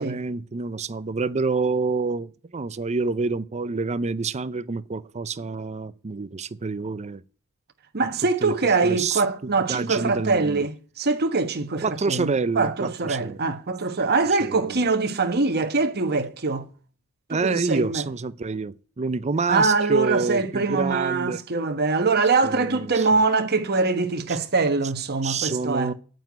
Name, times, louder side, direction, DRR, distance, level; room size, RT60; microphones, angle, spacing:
voice 1, 0.0-7.2 8.4-8.5 8.8-9.2 9.7-10.7 11.8-13.4 14.5-14.8 17.3-21.4 22.4-23.1 25.2-25.9, right 4 dB, 30° right, 0.5 m, -27 dB
voice 2, 7.9-16.7 17.3-18.1 19.5-25.9, right 3 dB, 45° right, 1.3 m, -23 dB
9.1 x 8.0 x 9.4 m
head